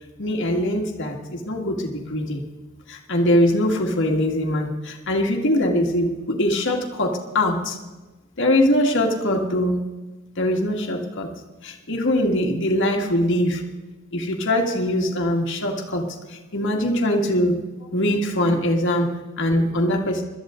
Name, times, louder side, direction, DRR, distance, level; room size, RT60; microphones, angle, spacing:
voice 1, 0.2-2.4 2.9-7.8 8.4-9.8 10.4-11.3 11.6-13.6 14.1-17.5 17.9-20.2, left 1 dB, 60° left, 1 dB, 2.0 m, -22 dB
22.0 x 13.0 x 3.8 m, 1.2 s
head